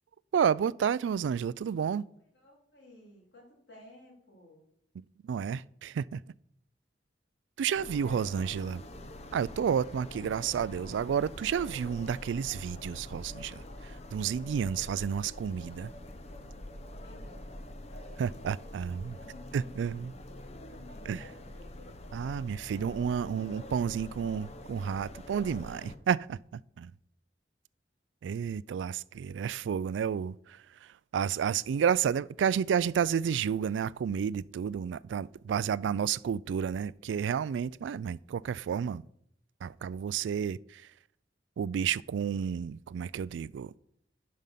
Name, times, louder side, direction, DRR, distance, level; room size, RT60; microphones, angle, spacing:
voice 1, 0.3-2.1 5.2-6.2 7.6-8.8 9.3-15.9 18.2-19.2 19.5-20.1 21.1-21.3 22.1-26.9 28.2-39.0 39.6-40.9 41.6-43.7, right 7 dB, 90° right, 0.3 m, -31 dB
voice 2, 2.3-4.6 8.0-8.3 17.0-18.6 19.2-22.0 32.0-32.2, left 1 dB, 75° left, 3.5 m, -55 dB
sound 1, 7.7-26.0, left 1 dB, 35° left, 0.7 m, -45 dB
11.0 x 5.3 x 5.8 m
head